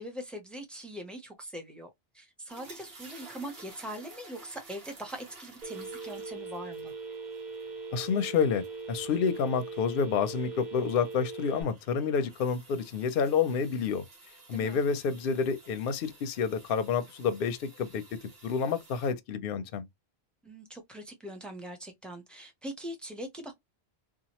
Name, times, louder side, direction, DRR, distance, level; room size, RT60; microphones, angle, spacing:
voice 1, 0.0-6.9 14.5-14.8 20.4-23.5, right 1 dB, ahead, 0.6 m, -42 dB
sound 1, 2.5-19.1, right 2 dB, 65° right, 1.2 m, -54 dB
Telephone, 5.6-11.6, right 4 dB, 50° right, 0.9 m, -40 dB
voice 2, 7.9-14.0 14.5-19.9, left 6 dB, 65° left, 0.7 m, -29 dB
2.8 x 2.3 x 2.9 m
omnidirectional pair, 1.1 m